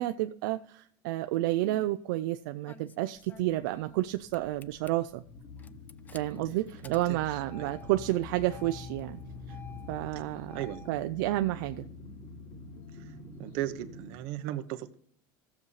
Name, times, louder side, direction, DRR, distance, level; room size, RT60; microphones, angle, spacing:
voice 1, 0.0-5.2 6.1-9.2 9.5-9.6 9.9-10.6 10.9-11.8, right 16 dB, 85° right, 8 dB, 0.5 m, -30 dB
Engine starting, 1.3-1.9 2.7-4.1 4.3-4.9 5.6-10.9, left 5 dB, 15° left, 0.3 m, -48 dB
sound 1, 3.1-14.1, left 3 dB, 40° left, 4.9 m, -48 dB
voice 2, 6.8-7.2 7.6-7.7 10.5-10.8 13.4-14.9, right 14 dB, 65° right, 9 dB, 1.0 m, -36 dB
16.0 x 7.1 x 3.2 m, 0.63 s
cardioid pair, 145°, 10 cm